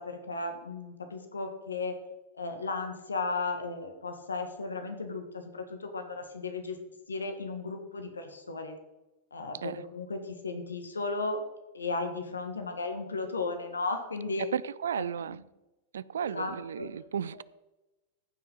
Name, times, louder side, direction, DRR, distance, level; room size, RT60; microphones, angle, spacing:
voice 1, 0.0-2.0 2.3-6.8 7.1-8.8 9.3-11.4 11.7-14.5 14.9-15.4 16.2-16.9 17.3-17.4, left 3 dB, 75° left, 6 dB, 1.5 m, -35 dB
voice 2, 14.5-15.4 15.9-17.4, right 8 dB, 65° right, 20 dB, 0.4 m, -34 dB
14.5 x 5.9 x 5.4 m, 1.0 s
figure-of-eight pair, 90°, 0 cm